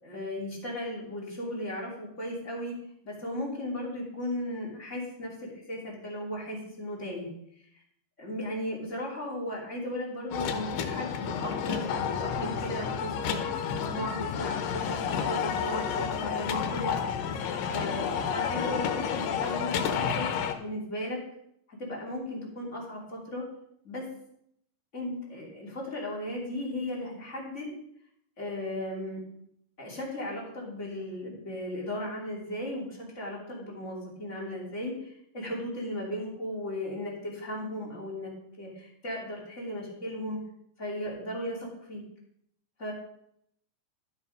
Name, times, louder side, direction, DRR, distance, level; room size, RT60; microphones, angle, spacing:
voice 1, 0.0-2.7 3.0-7.3 8.2-17.0 17.4-20.3 20.6-21.2 21.7-23.4 23.8-24.1 24.9-27.7 28.4-29.2 29.8-38.3 38.6-40.4 40.8-42.0 42.8-42.9, left 1 dB, 20° left, -4 dB, 3.0 m, -36 dB
sound 1, 10.3-20.5, left 7 dB, 90° left, 2.6 m, -30 dB
12.5 x 5.8 x 5.2 m, 0.73 s
omnidirectional pair, 3.8 m